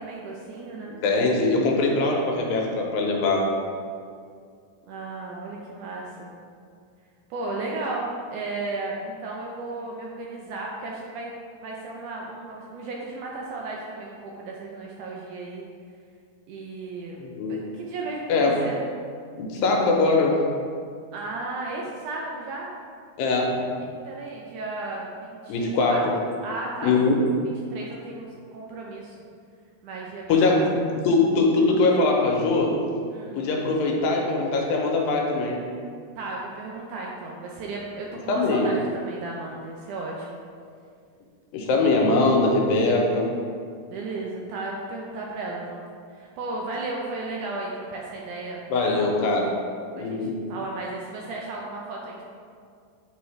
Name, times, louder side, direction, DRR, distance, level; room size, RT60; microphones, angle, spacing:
voice 1, 0.0-1.0 4.8-6.3 7.3-11.3 11.6-15.6 16.5-17.2 17.5-18.8 21.1-22.7 24.1-26.0 26.4-26.9 27.5-29.2 29.8-31.0 33.1-33.4 36.2-40.4 43.9-45.8 46.1-49.1 50.0-52.2, right 2 dB, 80° right, -2 dB, 1.8 m, -34 dB
voice 2, 0.9-3.5 17.2-17.6 18.3-18.6 19.4-20.4 23.2-23.6 25.5-26.1 26.8-27.2 30.3-30.8 31.0-32.8 33.3-35.6 38.3-38.7 41.5-43.3 48.7-49.5 50.0-50.4, left 3 dB, 90° left, 0 dB, 2.5 m, -22 dB
8.4 x 3.5 x 3.2 m, 2.2 s
omnidirectional pair, 4.0 m